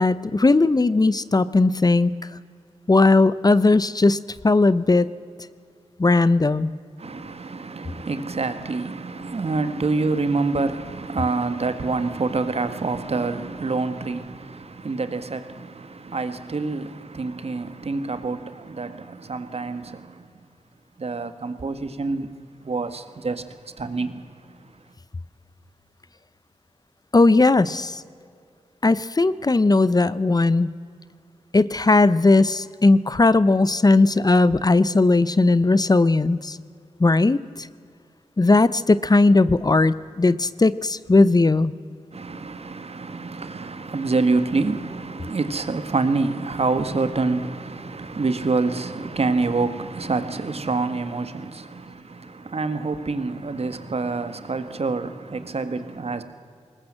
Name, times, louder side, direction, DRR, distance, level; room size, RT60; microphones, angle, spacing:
voice 1, 0.0-2.1 2.9-4.2 4.4-5.1 6.0-6.7 27.1-28.0 28.8-30.7 31.5-36.6 37.0-37.7 38.4-41.7, left 3 dB, 35° left, 0.7 m, -18 dB
voice 2, 7.0-20.3 21.0-22.3 22.6-23.4 23.8-24.1 42.1-56.2, right 3 dB, 60° right, 1.6 m, -27 dB
20.5 x 19.5 x 7.6 m
cardioid pair, 50°, 12 cm